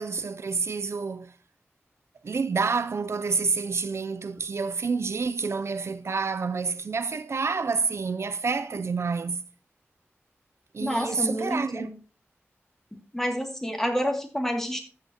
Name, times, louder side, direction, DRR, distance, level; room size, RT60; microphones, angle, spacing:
voice 1, 0.0-1.3 2.2-9.4 10.7-11.9, right 4 dB, 70° right, 0.5 m, -28 dB
voice 2, 10.8-11.9 13.1-14.8, equal, 10° left, 2.3 m, -28 dB
14.0 x 7.8 x 2.8 m
wide cardioid pair, 95°, 5 cm